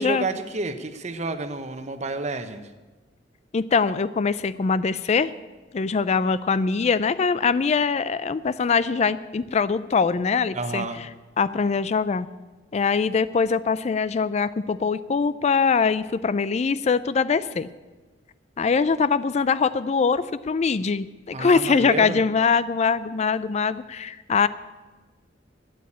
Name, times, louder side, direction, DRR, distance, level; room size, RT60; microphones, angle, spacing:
voice 1, 0.0-2.7 10.5-11.0 21.3-22.2, right 2 dB, 40° right, 9 dB, 1.0 m, -30 dB
voice 2, 3.5-5.3 5.7-10.8 11.4-12.3 12.7-17.7 18.6-24.5, left 5 dB, 35° left, 16 dB, 0.4 m, -22 dB
12.5 x 9.3 x 8.6 m, 1.3 s
head